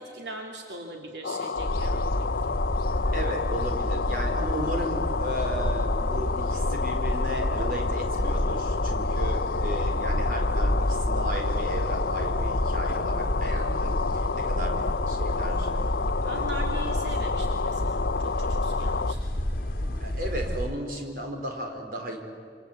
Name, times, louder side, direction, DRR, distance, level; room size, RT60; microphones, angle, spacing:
voice 1, 0.0-2.4 14.6-14.9 16.3-19.5, right 2 dB, 80° right, 1 dB, 2.7 m, -41 dB
sound 1, 1.2-19.1, left 5 dB, 75° left, 0.6 m, -30 dB
sound 2, 1.6-20.8, left 1 dB, 55° left, 1.7 m, -29 dB
sound 3, 2.1-21.2, equal, 15° right, 6.1 m, -49 dB
voice 2, 3.1-15.7 16.2-16.4 19.8-22.2, right 1 dB, 50° right, 2 dB, 4.7 m, -35 dB
27.5 x 26.0 x 8.3 m, 2.2 s
head